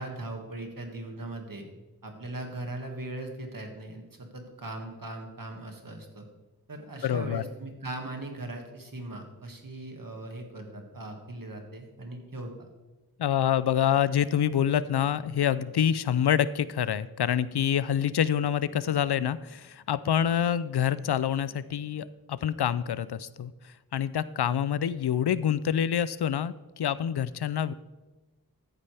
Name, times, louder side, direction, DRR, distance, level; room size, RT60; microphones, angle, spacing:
voice 1, 0.0-1.6 2.0-6.3 6.7-12.7, right 2 dB, 55° right, 3 dB, 2.0 m, -39 dB
voice 2, 7.0-7.4 13.2-23.5 23.9-27.7, left 9 dB, 75° left, 17 dB, 0.5 m, -26 dB
14.0 x 9.8 x 3.4 m, 1.2 s
wide cardioid pair, 60°, 39 cm